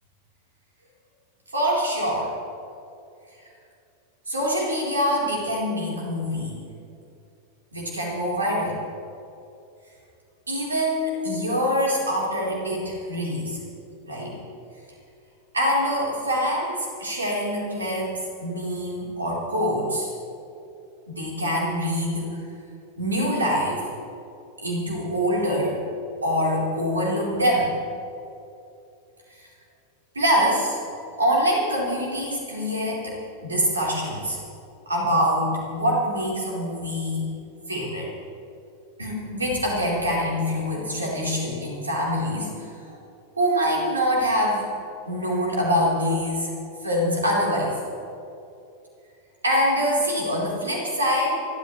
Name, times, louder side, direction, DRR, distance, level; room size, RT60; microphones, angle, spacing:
voice 1, 1.5-2.3 4.3-6.6 7.7-8.8 10.5-13.6 14.0-14.4 15.5-20.1 21.1-22.3 23.0-23.8 24.6-25.8 26.2-27.7 30.1-30.8 31.2-34.4 34.9-37.3 37.7-38.1 39.0-42.7 43.4-44.7 45.1-46.5 46.8-47.8 49.4-51.4, equal, 75° right, -3 dB, 4.0 m, -24 dB
30.0 x 13.0 x 3.3 m, 2.6 s
figure-of-eight pair, 90°, 0 cm